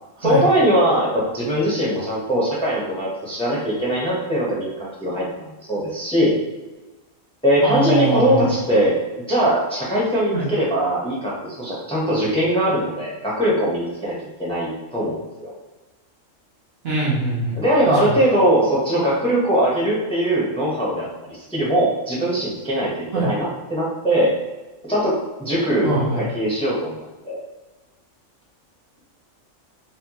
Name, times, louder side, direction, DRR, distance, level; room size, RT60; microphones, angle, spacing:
voice 1, 0.2-6.3 7.4-15.5 17.5-24.3 24.8-26.9 27.2-27.4, right 1 dB, 5° left, -6 dB, 0.8 m, -21 dB
voice 2, 7.6-8.6 10.3-10.5 16.8-18.2 23.1-23.3 25.8-26.2, right 2 dB, 55° right, -5 dB, 1.0 m, -23 dB
4.2 x 2.3 x 2.9 m, 1.1 s
omnidirectional pair, 1.4 m